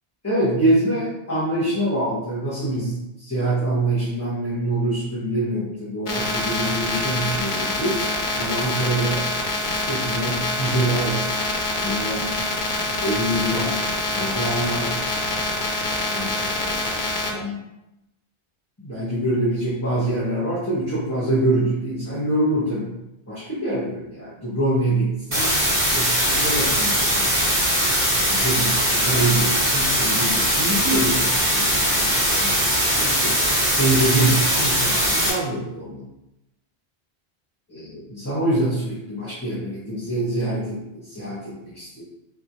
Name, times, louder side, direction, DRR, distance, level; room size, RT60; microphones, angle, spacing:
voice 1, 0.2-8.0 8.3-9.3 9.9-11.4 11.8-12.4 13.0-15.0 16.1-16.8 17.3-17.6 18.8-23.0 23.3-25.5 25.9-27.6 28.2-33.4 33.8-36.1 37.7-42.0, right 1 dB, 15° left, -10 dB, 1.1 m, -25 dB
sound 1, 6.1-17.3, left 2 dB, 50° left, 0.8 m, -25 dB
sound 2, 25.3-35.3, equal, 50° right, 1.9 m, -20 dB
4.5 x 3.2 x 2.7 m, 0.90 s
omnidirectional pair, 1.1 m